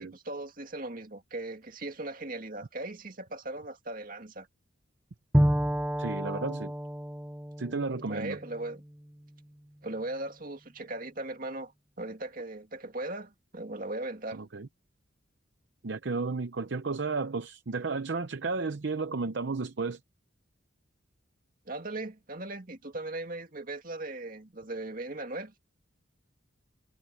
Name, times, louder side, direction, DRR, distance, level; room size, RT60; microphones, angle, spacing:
voice 1, 0.0-4.5 8.1-8.8 9.8-11.7 12.0-14.4 21.7-25.6, right 2 dB, 45° right, 2.2 m, -38 dB
Bowed string instrument, 5.3-9.1, equal, 5° right, 0.8 m, -30 dB
voice 2, 6.0-6.7 7.6-8.4 14.3-14.7 15.8-20.0, right 4 dB, 60° right, 0.7 m, -33 dB
head